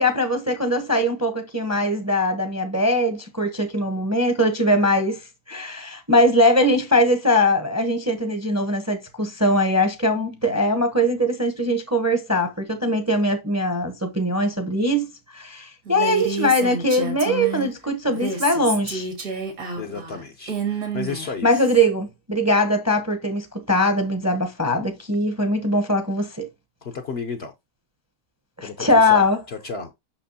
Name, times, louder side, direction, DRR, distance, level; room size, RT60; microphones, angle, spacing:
voice 1, 0.0-15.1 15.3-19.1 21.4-26.5 28.6-29.4, left 1 dB, 15° right, 0.7 m, -21 dB
Female speech woman speaking, 15.9-17.7 18.1-21.8, right 4 dB, 70° right, 2.3 m, -30 dB
voice 2, 19.8-21.5 26.8-27.5 28.6-29.9, left 5 dB, 55° left, 0.8 m, -33 dB
6.1 x 5.9 x 2.7 m
omnidirectional pair, 1.5 m